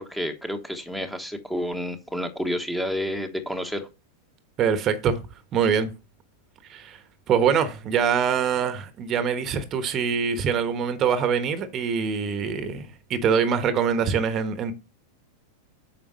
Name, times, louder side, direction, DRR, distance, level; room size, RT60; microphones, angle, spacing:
voice 1, 0.0-3.9, equal, 5° left, 1.3 m, -30 dB
voice 2, 4.6-5.2 5.5-5.9 6.7-7.0 7.3-14.7, right 7 dB, 30° right, 1.1 m, -24 dB
8.8 x 5.7 x 4.1 m
figure-of-eight pair, 90°, 0 cm